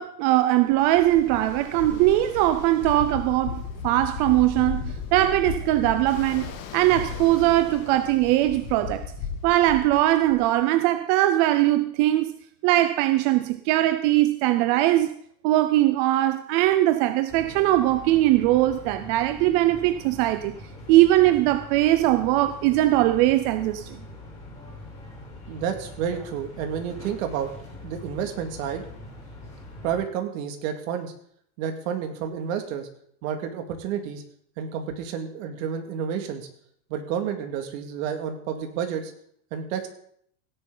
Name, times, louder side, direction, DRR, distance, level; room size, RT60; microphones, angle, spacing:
voice 1, 0.0-9.1 9.4-12.3 12.6-15.1 15.4-20.5 20.9-24.0, right 15 dB, 40° right, 0.6 m, -21 dB
Ocean, 0.7-10.6, left 6 dB, 60° left, 2.2 m, -35 dB
sound 1, 17.3-30.0, left 2 dB, 10° left, 7.1 m, -43 dB
voice 2, 25.5-27.5 27.8-28.8 29.8-31.1 31.6-32.9 33.2-34.2 34.6-36.5 36.9-39.1 39.5-39.9, right 8 dB, 60° right, 2.4 m, -30 dB
17.0 x 10.5 x 4.0 m
supercardioid pair, 155°, 45 cm